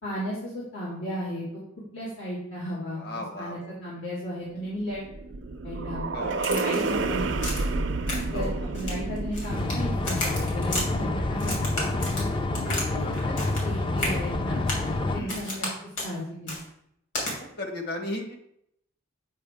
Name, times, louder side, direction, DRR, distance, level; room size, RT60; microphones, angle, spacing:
voice 1, 0.0-1.4 1.9-3.0 3.4-5.0 5.6-7.6 8.3-11.5 12.2-12.3 12.9-13.3 13.6-14.6 15.1-15.7 16.0-16.5, equal, 90° left, -8 dB, 2.2 m, -34 dB
voice 2, 3.0-3.7 6.1-6.4 8.3-8.6 12.5-13.4 15.1-15.5 17.6-18.4, left 1 dB, 50° left, 3 dB, 1.4 m, -36 dB
sound 1, 4.7-11.2, right 3 dB, 65° right, 0.5 m, -30 dB
Crack, 6.4-7.0 7.4-7.7 8.1-8.4 8.7-9.8 10.0-10.9 11.4-12.9 13.1-13.7 14.0-14.2 14.7-14.9 15.3-15.7 16.0-16.1 16.5-16.6 17.1-17.3, left 1 dB, 70° left, 3.0 m, -32 dB
sound 2, 9.5-15.2, left 2 dB, 25° left, 0.4 m, -28 dB
8.5 x 5.2 x 3.5 m, 0.74 s
head